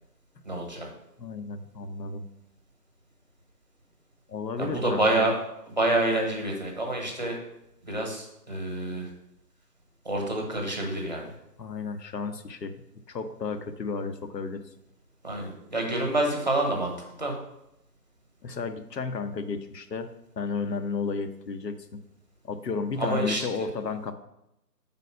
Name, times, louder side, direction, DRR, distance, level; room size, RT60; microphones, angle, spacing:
voice 1, 0.4-0.9 4.6-5.4 5.7-7.4 7.8-9.1 10.0-11.3 15.2-16.9 17.2-17.3 23.0-23.4, right 1 dB, 30° right, 1 dB, 0.9 m, -27 dB
voice 2, 1.2-2.2 4.3-5.3 11.6-12.8 13.1-14.6 18.4-20.1 20.4-21.9 22.4-24.1, left 4 dB, 80° left, 8 dB, 0.9 m, -33 dB
4.6 x 4.1 x 5.6 m, 0.84 s
hypercardioid pair, 175°, 49 cm